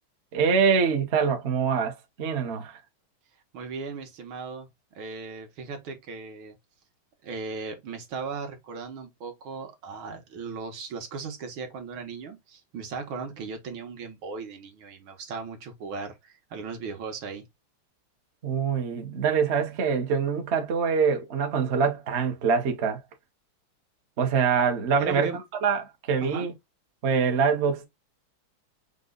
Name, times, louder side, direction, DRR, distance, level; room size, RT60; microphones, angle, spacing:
voice 1, 0.3-2.8 18.4-23.0 24.2-25.3 25.6-26.5 27.0-27.9, right 6 dB, 50° right, 0.8 m, -24 dB
voice 2, 3.5-4.7 5.0-6.6 7.2-17.4 25.0-25.4 26.2-26.5, right 5 dB, 75° right, 2.0 m, -37 dB
5.2 x 2.3 x 3.8 m
omnidirectional pair, 2.3 m